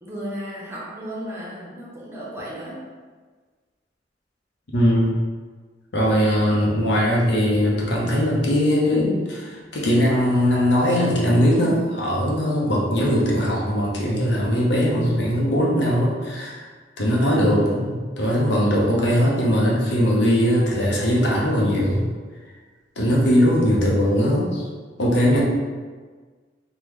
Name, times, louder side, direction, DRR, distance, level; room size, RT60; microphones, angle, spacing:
voice 1, 0.0-2.8, equal, 15° right, -5 dB, 0.6 m, -34 dB
voice 2, 4.7-5.1 5.9-16.6 17.0-22.0 23.0-24.7 25.0-25.4, equal, 80° left, -4 dB, 0.8 m, -20 dB
3.6 x 2.2 x 3.1 m, 1.5 s
head